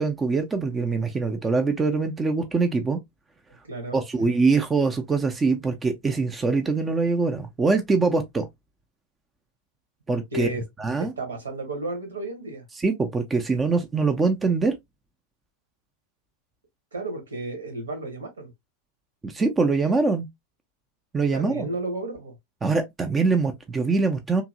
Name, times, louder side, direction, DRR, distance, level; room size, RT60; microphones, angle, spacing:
voice 1, 0.0-3.0 3.9-8.5 10.1-10.5 10.8-11.1 12.8-14.8 19.2-20.3 21.1-21.7 22.6-24.4, right 4 dB, 15° right, 0.4 m, -23 dB
voice 2, 3.6-4.3 10.3-10.6 11.0-12.6 16.9-18.5 21.3-22.3, right 2 dB, 70° right, 1.2 m, -33 dB
2.8 x 2.6 x 2.5 m
figure-of-eight pair, 90°, 0 cm